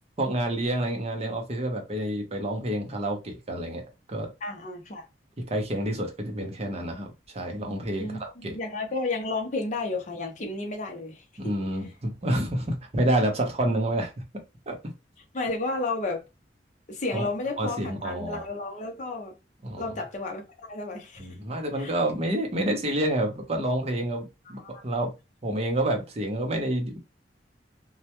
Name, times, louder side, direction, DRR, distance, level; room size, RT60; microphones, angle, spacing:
voice 1, 0.2-3.8 4.1-4.3 5.4-8.6 11.4-14.2 14.7-14.9 17.1-17.3 17.6-18.5 19.6-20.0 21.2-25.1 25.4-27.0, right 1 dB, 35° right, 0.6 m, -28 dB
voice 2, 4.4-5.1 8.0-11.5 15.3-16.3 16.9-19.3 19.8-21.3 21.8-21.9 24.5-24.8, left 3 dB, 45° left, 0.6 m, -32 dB
2.1 x 2.1 x 2.8 m
head